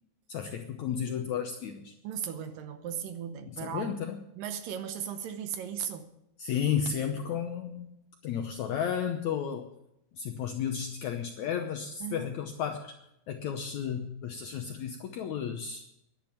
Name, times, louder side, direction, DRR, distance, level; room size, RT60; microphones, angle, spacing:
voice 1, 0.3-1.9 3.5-4.2 6.4-7.9 8.2-9.7 10.1-12.9 13.3-15.8, left 8 dB, 75° left, 5 dB, 1.7 m, -33 dB
voice 2, 2.0-4.0 4.4-6.1 12.0-12.4, right 8 dB, 75° right, 9 dB, 2.4 m, -37 dB
11.5 x 10.5 x 8.6 m, 0.82 s
omnidirectional pair, 4.4 m